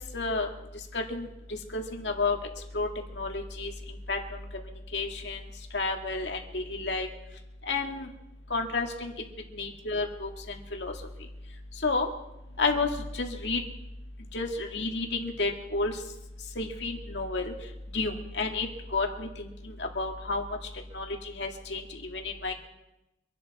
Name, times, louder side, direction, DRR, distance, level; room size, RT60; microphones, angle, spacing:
voice 1, 0.1-0.5 0.9-1.3 1.7-2.4 2.7-2.9 3.2-3.7 4.1-4.2 4.9-5.4 5.7-7.1 7.7-8.1 8.5-9.1 9.5-10.3 10.7-10.9 11.8-12.1 12.6-13.6 14.3-16.0 16.6-17.5 17.9-19.5 19.8-20.4 20.9-22.5, left 3 dB, 85° left, 2 dB, 2.1 m, -30 dB
25.5 x 11.0 x 4.2 m, 0.92 s
head